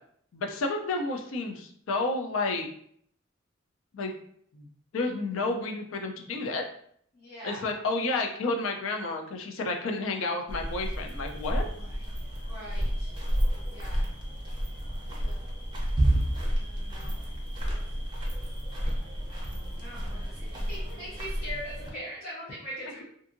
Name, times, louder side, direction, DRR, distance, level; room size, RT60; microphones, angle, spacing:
voice 1, 0.3-2.7 3.9-4.1 4.5-4.7 4.9-6.6 7.4-11.6, left 3 dB, 75° left, 3 dB, 0.4 m, -31 dB
voice 2, 7.1-7.6 11.8-11.9 12.4-13.1 13.7-14.0 15.2-15.4 16.6-17.2 17.7-17.8 19.3-19.5 19.8-20.2 20.7-23.0, equal, 45° left, -7 dB, 0.7 m, -41 dB
sound 1, 10.5-21.9, equal, 20° right, 0.5 m, -31 dB
2.6 x 2.6 x 2.5 m, 0.65 s
head